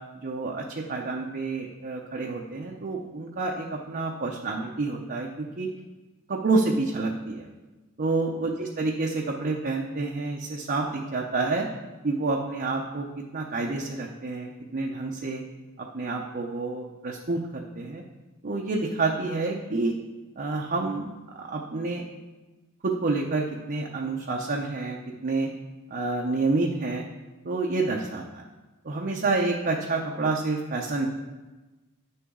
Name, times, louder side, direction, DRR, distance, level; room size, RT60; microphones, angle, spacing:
voice 1, 0.2-5.7 6.3-7.5 8.0-11.7 12.0-13.1 13.3-15.4 15.8-18.0 18.4-19.9 20.4-21.1 21.3-22.0 22.8-25.5 25.9-27.0 27.4-28.4 28.8-31.1, right 3 dB, 45° right, -1 dB, 0.7 m, -28 dB
9.4 x 6.9 x 3.7 m, 1.2 s
head